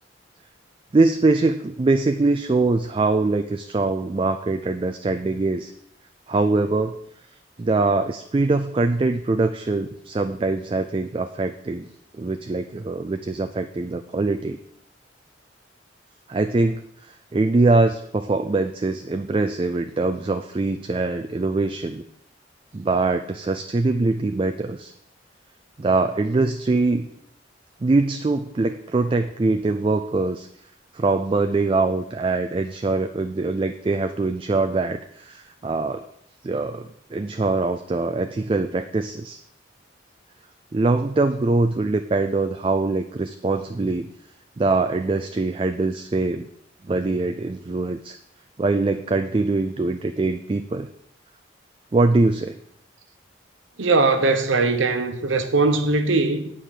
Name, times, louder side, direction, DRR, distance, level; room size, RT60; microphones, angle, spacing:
voice 1, 0.9-5.7 6.3-7.0 7.6-11.9 12.2-14.6 16.3-22.0 22.7-24.9 25.8-27.1 27.8-30.5 30.9-36.0 36.4-39.4 40.7-44.1 44.6-46.5 46.8-48.2 48.6-50.9 51.9-52.6, right 3 dB, 25° right, 0.3 m, -23 dB
voice 2, 53.8-56.5, right 3 dB, 80° right, 1.1 m, -20 dB
8.8 x 4.9 x 7.5 m
head